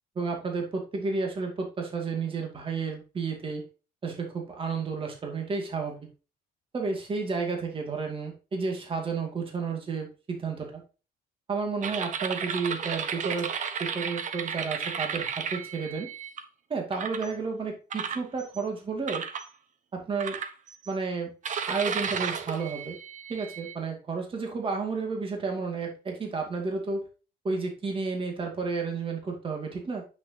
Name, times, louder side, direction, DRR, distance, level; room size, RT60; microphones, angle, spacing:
voice 1, 0.2-3.6 4.0-6.0 6.7-10.8 11.5-13.5 13.8-16.1 16.7-19.2 19.9-20.4 20.9-21.3 21.7-23.0 23.3-27.0 27.4-30.0, right 4 dB, 30° right, 2 dB, 2.4 m, -31 dB
sound 1, 11.8-16.4 16.9-17.3 17.9-18.6 19.1-19.5 20.2-20.9 21.4-23.8, right 6 dB, 50° right, 1.1 m, -33 dB
9.7 x 6.4 x 2.9 m, 0.33 s
cardioid pair, 110°, 17 cm